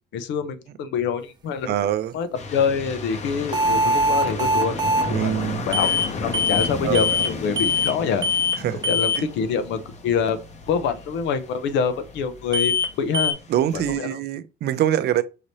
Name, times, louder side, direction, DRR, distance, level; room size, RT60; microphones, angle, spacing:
voice 1, 0.1-1.9 2.1-4.8 5.1-8.3 8.7-10.4 10.7-13.4 13.7-14.2, left 6 dB, 80° left, 0.8 m, -26 dB
voice 2, 1.7-2.1 5.1-5.7 6.8-7.0 8.6-8.8 9.2-9.3 13.5-15.2, right 11 dB, 60° right, 0.5 m, -23 dB
sound 1, 2.3-13.9, left 4 dB, 35° left, 0.9 m, -34 dB
sound 2, 3.5-5.1 5.7-6.1 6.3-6.7 6.9-7.3 7.6-7.9 8.2-8.6 8.8-9.2 12.5-12.9 13.1-13.3, left 2 dB, 25° right, 0.8 m, -21 dB
4.9 x 2.7 x 3.1 m
cardioid pair, 125°, 19 cm